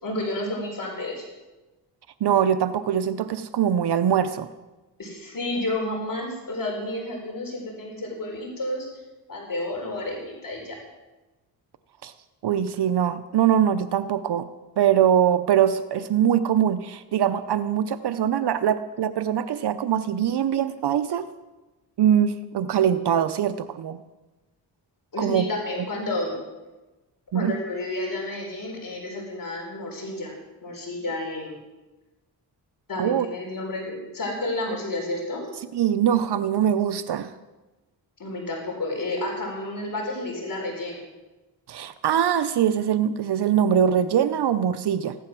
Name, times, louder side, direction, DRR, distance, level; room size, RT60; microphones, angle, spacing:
voice 1, 0.0-1.3 5.0-8.9 9.3-10.8 25.1-26.3 27.3-31.6 32.9-35.4 38.2-41.0, left 1 dB, 50° left, 0 dB, 4.3 m, -31 dB
voice 2, 2.2-4.5 12.0-12.1 12.4-14.5 14.8-21.3 22.0-24.0 25.2-25.5 27.3-27.5 33.0-33.3 35.7-37.3 41.7-45.1, right 9 dB, 70° right, 12 dB, 0.7 m, -22 dB
15.5 x 11.0 x 6.1 m, 1.1 s
cardioid pair, 80°, 42 cm